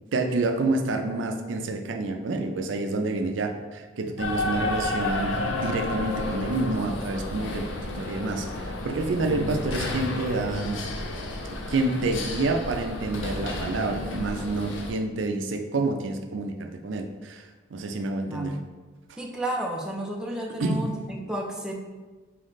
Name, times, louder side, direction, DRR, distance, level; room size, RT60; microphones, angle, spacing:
voice 1, 0.1-7.6 8.0-10.8 11.7-18.6 20.6-20.8, right 2 dB, 80° right, 4 dB, 0.5 m, -28 dB
sound 1, 4.2-14.9, left 2 dB, 85° left, 0.7 m, -31 dB
voice 2, 18.3-18.6 19.2-21.7, right 1 dB, 5° right, -1 dB, 0.4 m, -32 dB
4.2 x 3.1 x 4.0 m, 1.3 s
head